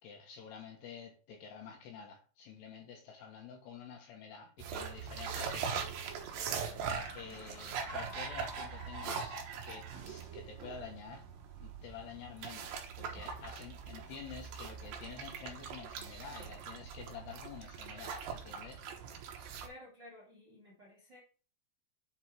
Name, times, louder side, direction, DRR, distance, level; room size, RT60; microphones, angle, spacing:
voice 1, 0.0-5.9 6.2-6.9 7.1-9.4 9.6-11.3 11.6-18.9, left 6 dB, 70° left, 3.1 m, -49 dB
sound 1, 4.6-19.7, right 6 dB, 75° right, 2.0 m, -42 dB
sound 2, 5.8-9.6, left 3 dB, 30° left, 1.6 m, -52 dB
voice 2, 19.6-21.2, left 1 dB, 45° right, 1.4 m, -54 dB
7.9 x 4.9 x 4.6 m
omnidirectional pair, 5.6 m